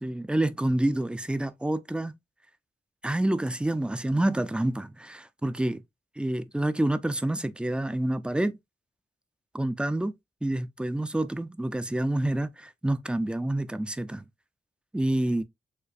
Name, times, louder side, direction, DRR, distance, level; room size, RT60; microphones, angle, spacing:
voice 1, 0.0-2.1 3.0-5.8 6.2-8.6 9.5-10.1 10.4-14.2 14.9-15.4, right 1 dB, 5° right, 0.4 m, -28 dB
6.5 x 2.4 x 2.4 m
wide cardioid pair, 100°, 18 cm